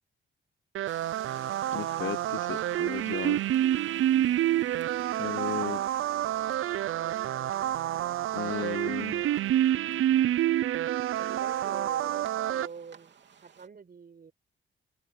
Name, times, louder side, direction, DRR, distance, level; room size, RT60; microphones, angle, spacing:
sound 1, 0.7-12.7, right 12 dB, 90° right, 0.4 m, -28 dB
sound 2, 0.9-13.7, right 7 dB, 60° right, 3.0 m, -54 dB
voice 1, 1.7-3.4 5.2-5.8 8.3-9.2, left 10 dB, 65° left, 0.8 m, -35 dB
sound 3, 3.8-11.8, left 2 dB, 20° left, 5.5 m, -68 dB
voice 2, 8.5-9.4 11.1-13.2 13.4-14.3, right 5 dB, 45° right, 6.3 m, -46 dB
open air
wide cardioid pair, 110°, 21 cm